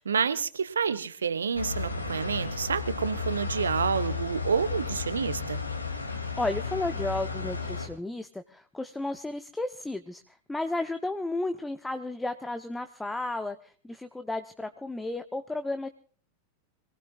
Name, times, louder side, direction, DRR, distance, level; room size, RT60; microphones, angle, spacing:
voice 1, 0.0-5.6, right 6 dB, 70° right, 13 dB, 1.1 m, -29 dB
sound 1, 1.5-7.9, left 4 dB, 80° left, 2.7 m, -33 dB
voice 2, 6.1-15.9, left 2 dB, 5° left, 9 dB, 0.9 m, -33 dB
25.5 x 19.0 x 2.5 m, 0.43 s
figure-of-eight pair, 90°, 0 cm